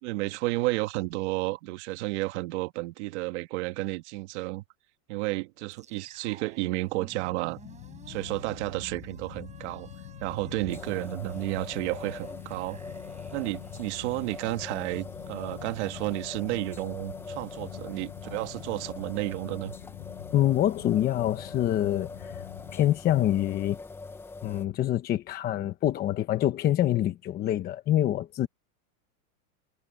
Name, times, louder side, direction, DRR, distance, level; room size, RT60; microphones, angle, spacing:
voice 1, 0.0-4.6 5.1-7.6 8.1-9.9 10.2-12.8 13.3-19.7, right 21 dB, 50° right, 1.6 m, -32 dB
sound 1, 5.7-15.9, right 7 dB, 15° right, 6.6 m, -53 dB
sound 2, 6.4-22.8, left 16 dB, 60° left, 1.5 m, -46 dB
sound 3, 10.7-24.6, left 3 dB, 5° left, 0.6 m, -43 dB
voice 2, 20.3-22.4 22.7-23.8 24.4-28.5, left 12 dB, 20° left, 1.0 m, -26 dB
supercardioid pair, 165°, 43 cm